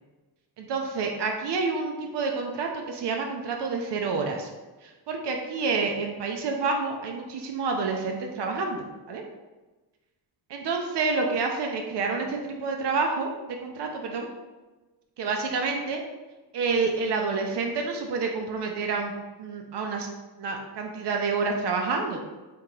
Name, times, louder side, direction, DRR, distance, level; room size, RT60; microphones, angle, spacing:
voice 1, 0.6-4.5 4.8-9.2 10.5-13.3 13.6-14.3 15.2-16.0 16.5-19.1 19.4-20.1 20.4-22.2, right 4 dB, 70° right, 2 dB, 0.5 m, -28 dB
3.6 x 2.8 x 3.0 m, 1.2 s
wide cardioid pair, 160°, 43 cm